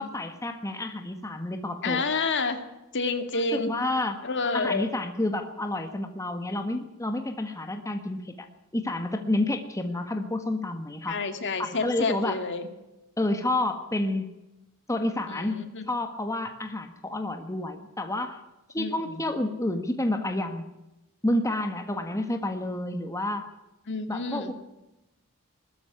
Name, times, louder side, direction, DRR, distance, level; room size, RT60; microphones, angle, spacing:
voice 1, 0.0-2.0 3.5-4.2 4.5-8.5 8.7-11.2 11.6-12.4 13.2-14.3 14.9-15.6 15.9-18.4 18.7-20.6 21.2-23.5 24.1-24.5, left 1 dB, 15° left, 6 dB, 1.5 m, -29 dB
voice 2, 1.8-2.6 2.9-3.7 4.2-4.9 11.1-12.7 15.3-15.9 18.8-19.2 23.9-24.5, left 3 dB, 55° left, 8 dB, 2.5 m, -29 dB
20.0 x 14.0 x 9.7 m, 0.98 s
head